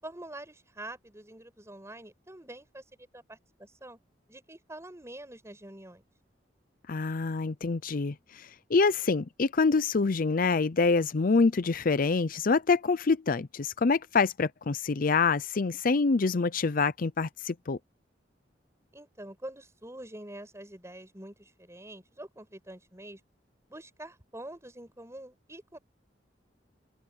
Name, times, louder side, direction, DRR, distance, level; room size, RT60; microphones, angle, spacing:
voice 1, 0.0-4.0 4.3-6.0 18.9-23.2 23.7-25.8, right 1 dB, 15° right, 5.4 m, -46 dB
voice 2, 6.9-17.8, left 4 dB, 50° left, 0.5 m, -26 dB
open air
head